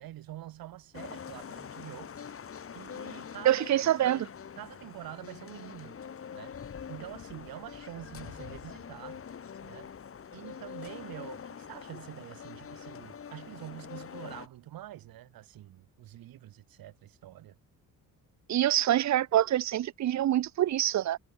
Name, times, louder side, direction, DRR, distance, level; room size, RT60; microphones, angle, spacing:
voice 1, 0.0-2.1 2.7-3.6 4.6-6.0 6.3-6.5 6.9-9.2 9.6-9.9 10.3-17.5, right 14 dB, 80° right, 7.7 m, -46 dB
sound 1, 0.9-14.5, left 7 dB, 40° left, 7.1 m, -44 dB
voice 2, 3.4-4.3 18.5-21.2, right 12 dB, 50° right, 1.0 m, -25 dB
cardioid pair, 145°, 35 cm